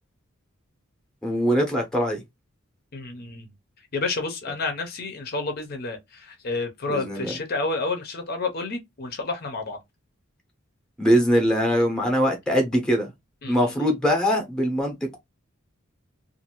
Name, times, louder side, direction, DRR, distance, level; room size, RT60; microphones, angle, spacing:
voice 1, 1.2-2.2 6.9-7.3 11.0-13.1 13.5-15.2, equal, 5° left, 0.8 m, -22 dB
voice 2, 2.9-3.5 3.9-9.8 13.4-13.7, left 3 dB, 45° left, 0.6 m, -30 dB
2.6 x 2.5 x 2.8 m
head